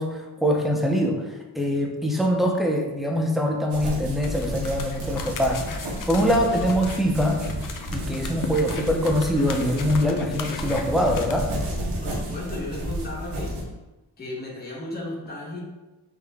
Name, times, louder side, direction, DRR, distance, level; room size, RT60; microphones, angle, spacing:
voice 1, 0.0-5.6 6.1-7.4 7.9-11.5, equal, ahead, 1 dB, 0.7 m, -23 dB
sound 1, 3.7-13.6, equal, 85° right, 0.9 m, -32 dB
sound 2, 4.2-11.3, left 6 dB, 55° left, 0.5 m, -38 dB
Breathing, 6.2-6.4 6.6-6.8 7.1-7.2 7.5-8.8 9.1-10.0 10.3-11.2 11.5-12.4, right 2 dB, 50° right, 0.7 m, -37 dB
voice 2, 11.7-13.7 14.2-15.6, left 1 dB, 25° left, -4 dB, 0.9 m, -35 dB
3.8 x 2.1 x 3.5 m, 1.1 s
cardioid pair, 50°, 40 cm